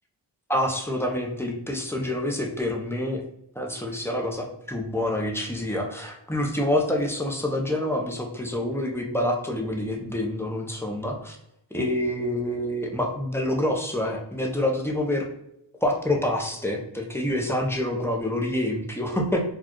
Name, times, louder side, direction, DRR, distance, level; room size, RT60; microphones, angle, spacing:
voice 1, 0.5-3.2 3.5-11.4 11.7-15.3 15.8-19.4, left 1 dB, 5° left, 1 dB, 0.7 m, -27 dB
4.2 x 2.4 x 3.0 m, 0.80 s
wide cardioid pair, 50°, 46 cm